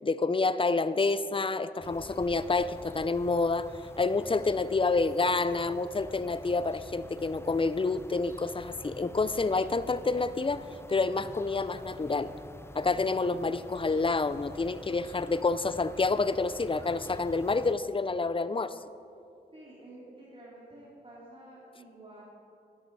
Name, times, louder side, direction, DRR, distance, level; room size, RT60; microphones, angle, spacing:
voice 1, 0.0-3.7 4.0-10.6 10.9-12.3 12.7-18.8, left 3 dB, 30° left, 14 dB, 0.6 m, -28 dB
sound 1, 1.8-17.7, left 1 dB, 15° left, 0.9 m, -47 dB
voice 2, 19.5-22.2, right 1 dB, 30° right, -6 dB, 3.3 m, -50 dB
13.5 x 10.5 x 4.8 m, 2.6 s
cardioid pair, 45°, 17 cm